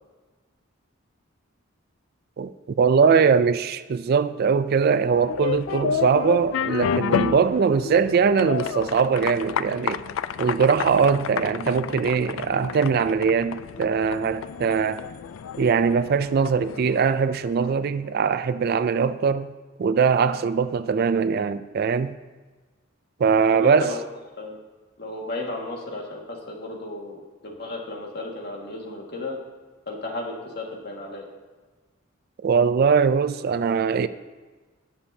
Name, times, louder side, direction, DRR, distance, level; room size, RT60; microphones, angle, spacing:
voice 1, 2.4-10.0 10.4-15.1 15.6-19.5 19.8-22.2 23.2-23.9 32.4-34.1, right 6 dB, 50° right, 0.3 m, -21 dB
sound 1, 5.2-17.9, left 7 dB, 75° left, 0.3 m, -31 dB
voice 2, 23.5-24.0 24.4-24.6 25.0-29.4 29.9-31.3, left 2 dB, 55° left, 1.9 m, -34 dB
18.5 x 7.0 x 2.8 m
head